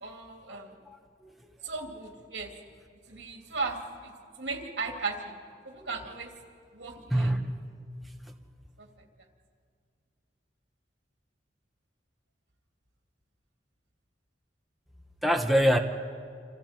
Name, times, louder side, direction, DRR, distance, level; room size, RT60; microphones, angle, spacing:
voice 1, 0.0-0.7 1.6-2.5 3.1-4.1 4.4-5.4 5.6-6.3 6.7-7.3 8.8-8.9, right 4 dB, 70° right, 2 dB, 2.9 m, -36 dB
voice 2, 0.9-1.3 7.1-7.7 15.2-15.8, equal, ahead, 2 dB, 0.9 m, -25 dB
29.0 x 27.5 x 4.5 m, 2.1 s
head